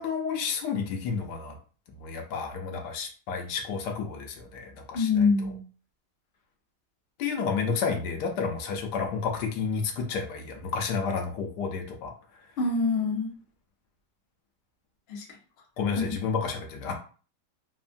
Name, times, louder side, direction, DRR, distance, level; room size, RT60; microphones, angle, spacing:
voice 1, 0.0-1.6 1.9-5.5 7.2-12.1 15.8-16.9, left 5 dB, 80° left, 4 dB, 1.1 m, -31 dB
voice 2, 4.9-5.6 12.6-13.3 15.1-15.2 16.0-16.1, left 4 dB, 50° left, -1 dB, 0.8 m, -25 dB
3.3 x 2.1 x 2.5 m, 0.39 s
omnidirectional pair, 1.8 m